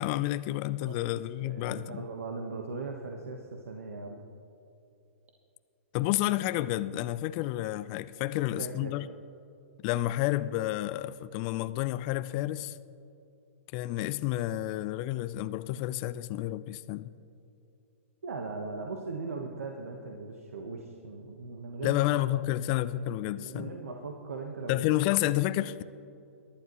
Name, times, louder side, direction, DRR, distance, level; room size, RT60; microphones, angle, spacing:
voice 1, 0.0-2.0 5.9-9.1 9.8-12.8 13.7-17.1 21.8-23.7 24.7-25.8, left 15 dB, 40° left, 14 dB, 0.4 m, -30 dB
voice 2, 1.4-4.2 8.6-9.0 18.2-22.0 23.4-24.9, right 3 dB, 80° right, 2 dB, 1.2 m, -39 dB
22.5 x 11.5 x 3.1 m, 2.7 s
hypercardioid pair, 125°, 7 cm